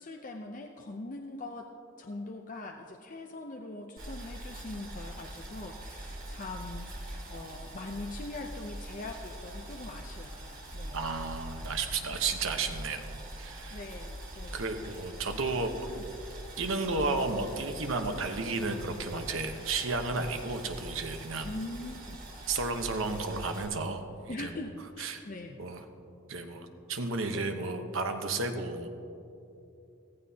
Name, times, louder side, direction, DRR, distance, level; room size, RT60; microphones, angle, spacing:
voice 1, 0.0-1.7 2.0-11.0 13.7-14.6 15.9-16.0 21.4-22.2 24.3-25.6 27.3-27.6, left 2 dB, 40° left, 2 dB, 0.5 m, -42 dB
Boiling, 4.0-23.7, right 1 dB, 40° right, 2.3 m, -43 dB
voice 2, 10.9-13.1 13.4-13.8 14.5-15.7 16.6-21.5 22.5-24.5 25.0-25.2 25.6-25.8 26.3-28.9, right 3 dB, 75° right, 6 dB, 1.0 m, -33 dB
15.5 x 15.0 x 2.8 m, 2.7 s
head